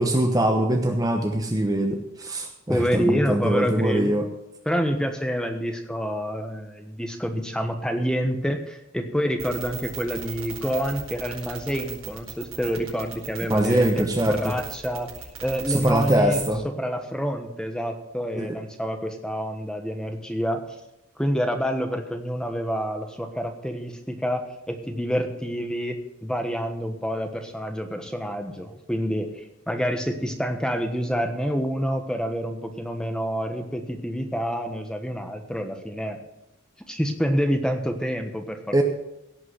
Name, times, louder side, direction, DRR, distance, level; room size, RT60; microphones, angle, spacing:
voice 1, 0.0-4.3 13.5-14.5 15.7-16.6 18.3-18.6 38.7-38.8, right 1 dB, 15° right, 4 dB, 0.9 m, -23 dB
voice 2, 2.7-4.1 4.6-15.1 15.4-20.6 21.2-36.2 36.9-38.8, equal, 5° left, 5 dB, 1.2 m, -28 dB
sound 1, 9.4-16.5, right 8 dB, 85° right, 4.9 m, -37 dB
17.0 x 5.9 x 7.9 m, 0.87 s
head